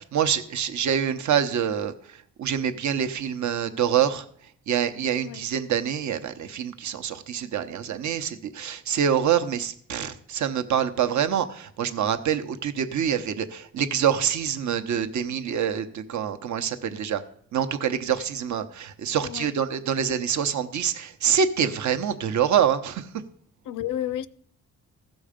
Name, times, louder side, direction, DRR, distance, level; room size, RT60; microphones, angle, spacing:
voice 1, 0.0-4.2 4.7-17.2 17.5-23.1, right 8 dB, 65° right, 0.9 m, -26 dB
voice 2, 19.2-19.5 23.7-24.3, left 11 dB, 80° left, 0.5 m, -31 dB
15.5 x 6.3 x 5.0 m
cardioid pair, 125°, 31 cm